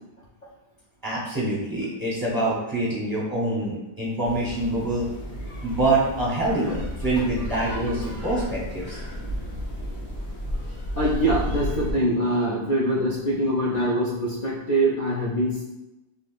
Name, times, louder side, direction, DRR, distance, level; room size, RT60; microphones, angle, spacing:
voice 1, 1.0-5.1 5.6-9.0, right 2 dB, 20° right, -5 dB, 0.8 m, -25 dB
sound 1, 4.2-11.9, equal, 90° left, 1.2 m, -33 dB
voice 2, 7.0-8.2 10.9-15.6, right 1 dB, 50° left, -7 dB, 0.5 m, -24 dB
3.5 x 2.7 x 2.4 m, 0.98 s
omnidirectional pair, 1.1 m